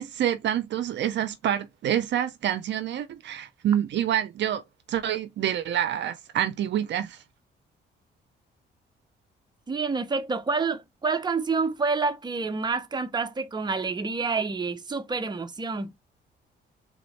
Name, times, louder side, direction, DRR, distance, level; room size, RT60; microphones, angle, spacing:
voice 1, 0.0-4.6 4.9-7.2, right 10 dB, 65° right, 0.6 m, -27 dB
voice 2, 9.7-15.9, right 4 dB, 20° right, 0.7 m, -28 dB
3.6 x 2.6 x 3.2 m
cardioid pair, 90°, 20 cm